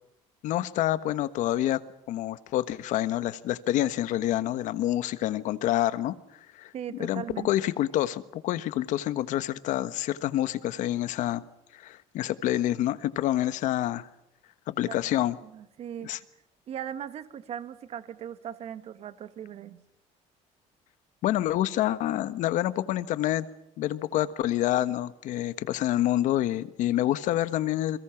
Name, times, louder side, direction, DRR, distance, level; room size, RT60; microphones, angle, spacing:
voice 1, 0.4-1.8 2.1-6.1 6.5-6.7 7.0-11.4 11.7-14.1 14.7-15.4 16.0-16.2 21.2-23.5 23.8-28.0, left 13 dB, 70° left, 1.4 m, -27 dB
voice 2, 6.7-7.5 14.8-15.0 15.4-16.1 16.7-19.8, right 9 dB, 50° right, 1.8 m, -38 dB
29.5 x 23.0 x 6.0 m
cardioid pair, 130°, 13 cm